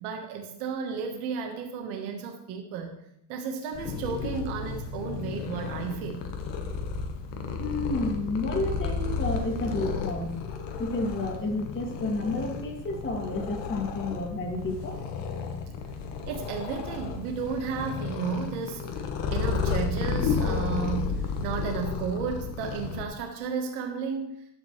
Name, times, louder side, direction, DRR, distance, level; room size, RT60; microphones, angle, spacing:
voice 1, 0.0-3.0 3.3-6.2 16.3-18.8 19.3-24.3, right 6 dB, 85° right, 3 dB, 1.4 m, -33 dB
Purr, 3.7-23.0, left 5 dB, 60° left, 1.3 m, -32 dB
voice 2, 7.6-10.4 10.8-15.0, left 2 dB, 25° left, 0 dB, 2.1 m, -30 dB
11.5 x 7.9 x 3.2 m, 0.77 s
cardioid pair, 140°, 48 cm